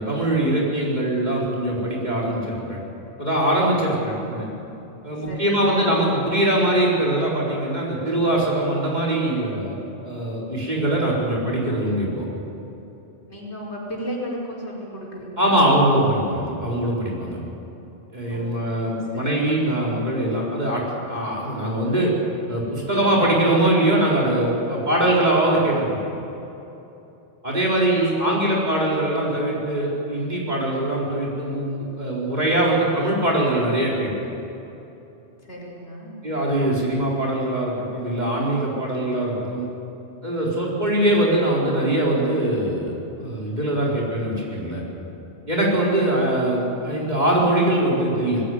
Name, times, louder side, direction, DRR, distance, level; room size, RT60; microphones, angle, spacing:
voice 1, 0.0-2.8 3.2-4.4 5.0-12.2 15.4-17.4 18.1-22.1 22.5-26.0 27.4-34.1 36.2-39.7 40.2-44.8 45.5-48.4, right 1 dB, 40° right, -4 dB, 4.5 m, -22 dB
voice 2, 4.0-4.6 5.2-5.9 13.3-15.8 18.2-19.8 27.7-28.7 35.4-36.1, equal, 75° left, -4 dB, 5.1 m, -36 dB
19.5 x 16.0 x 9.4 m, 2.9 s
omnidirectional pair, 1.2 m